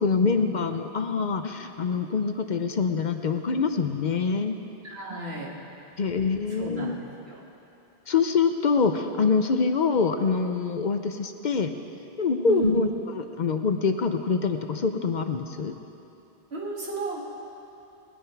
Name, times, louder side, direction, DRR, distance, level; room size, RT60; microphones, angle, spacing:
voice 1, 0.0-4.6 6.0-7.0 8.1-11.7 12.2-15.7, left 5 dB, 50° left, 7 dB, 0.7 m, -25 dB
voice 2, 4.8-5.5 6.5-6.9 7.3-7.4 12.5-12.7 16.5-17.3, right 4 dB, 90° right, -4 dB, 2.3 m, -33 dB
20.0 x 10.0 x 4.6 m, 2.9 s
omnidirectional pair, 1.0 m